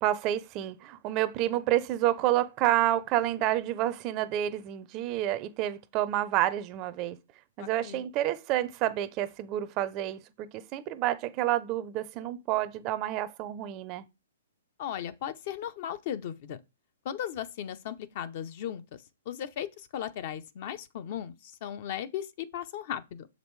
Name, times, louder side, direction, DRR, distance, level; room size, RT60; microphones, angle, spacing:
voice 1, 0.0-7.2 7.6-14.1, right 13 dB, 30° right, 0.5 m, -29 dB
voice 2, 7.6-8.0 14.8-16.6 17.0-18.8 19.3-23.3, left 10 dB, 45° left, 0.7 m, -36 dB
6.8 x 5.1 x 3.2 m
hypercardioid pair, 150°, 0 cm